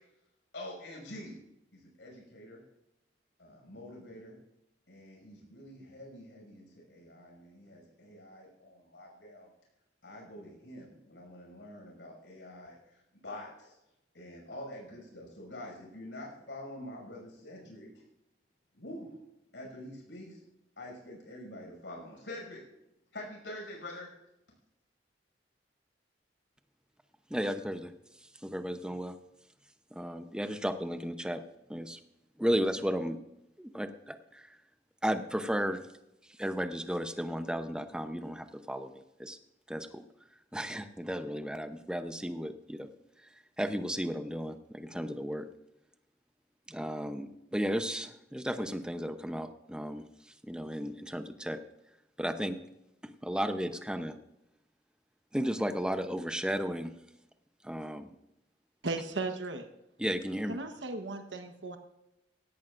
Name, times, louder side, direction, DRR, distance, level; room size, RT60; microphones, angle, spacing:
voice 1, 0.5-1.4 1.7-2.6 3.4-4.4 4.9-9.5 10.0-13.8 14.1-18.0 18.7-19.2 19.5-20.4 20.8-22.7 23.1-24.1, left 1 dB, 80° left, -1 dB, 6.4 m, -46 dB
voice 2, 27.3-29.2 29.9-31.4 31.7-32.0 32.4-33.2 33.6-34.6 35.0-35.9 36.2-39.4 39.7-40.0 40.5-42.9 43.2-45.5 46.7-51.6 52.2-52.6 53.0-54.1 55.3-56.9 57.6-58.1 60.0-60.6, equal, 5° right, 8 dB, 0.8 m, -34 dB
voice 3, 58.8-59.7 60.5-61.8, right 3 dB, 90° right, 5 dB, 1.2 m, -36 dB
17.0 x 16.5 x 2.6 m, 0.89 s
head